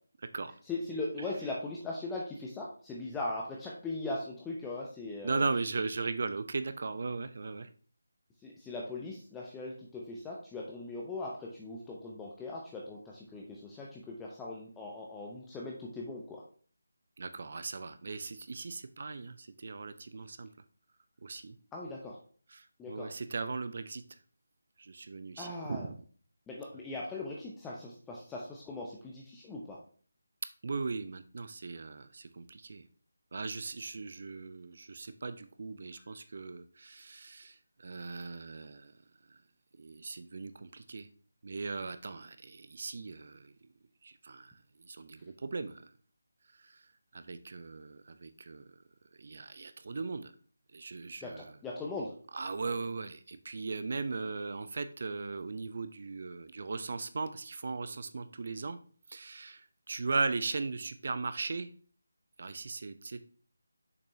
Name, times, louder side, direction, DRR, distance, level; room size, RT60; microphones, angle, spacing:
voice 1, 0.7-5.4 8.4-16.4 21.7-22.2 22.8-23.1 25.4-25.9 26.5-29.8 51.2-52.1, left 2 dB, 10° left, -2 dB, 0.7 m, -40 dB
voice 2, 5.2-7.7 17.2-20.5 21.2-21.5 22.5-24.0 24.8-26.0 30.6-32.8 33.3-38.9 39.8-41.1 41.4-43.5 44.0-44.5 44.9-45.8 46.7-46.8 47.1-48.6 49.2-50.3 50.7-51.5 52.3-58.8 59.1-59.6 59.9-61.7 62.4-63.3, right 4 dB, 50° right, 11 dB, 0.5 m, -38 dB
6.8 x 5.3 x 2.7 m, 0.43 s
figure-of-eight pair, 160°, 0 cm